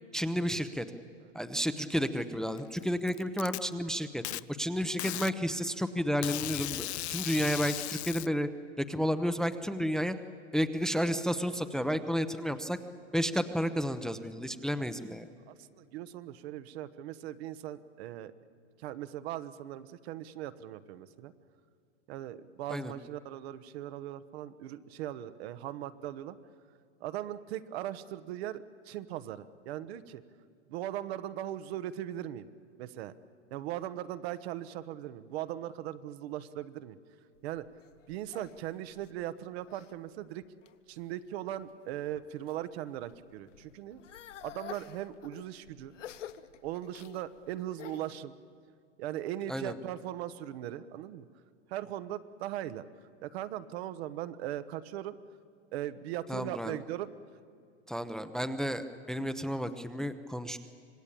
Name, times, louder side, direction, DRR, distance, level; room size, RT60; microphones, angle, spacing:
voice 1, 0.1-0.9 1.3-4.2 4.6-8.5 8.8-10.1 10.5-12.8 13.1-15.3 22.7-22.9 49.5-49.7 56.3-56.8 57.9-60.6, equal, ahead, 10 dB, 0.8 m, -31 dB
Packing tape duct tape, 2.6-3.6 4.2-4.4 5.0-5.3 6.2-8.3, left 17 dB, 65° left, 0.7 m, -36 dB
voice 2, 15.5-18.3 18.8-21.3 22.1-26.4 27.0-30.2 30.7-32.5 32.8-33.1 33.5-37.0 37.4-37.7 38.1-40.4 40.9-44.0 44.4-45.9 46.6-48.3 49.0-51.3 51.7-52.8 53.2-55.1 55.7-57.1, right 12 dB, 55° right, 13 dB, 1.2 m, -39 dB
sound 1, 37.3-39.9 40.4-41.0 41.6-42.6 43.0-48.2, left 10 dB, 80° left, 1.2 m, -49 dB
26.0 x 20.0 x 8.6 m, 2.3 s
hypercardioid pair, 120°, 36 cm